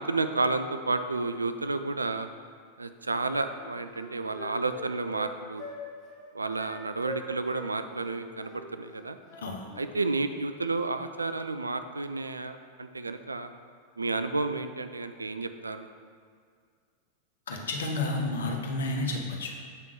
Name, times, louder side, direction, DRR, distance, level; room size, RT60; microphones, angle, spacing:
voice 1, 0.0-2.3 2.8-5.7 6.3-9.2 9.7-13.5 14.0-15.9, right 3 dB, 80° right, 9 dB, 0.3 m, -31 dB
Wind instrument woodwind instrument, 3.5-5.3 5.6-5.8 6.1-6.2 6.6-6.7 7.0-7.7 8.0-9.9, left 1 dB, 30° left, 1.6 m, -43 dB
voice 2, 17.5-19.5, left 2 dB, 65° left, 1 dB, 0.9 m, -31 dB
7.5 x 3.6 x 4.7 m, 2.1 s
figure-of-eight pair, 90°, 0 cm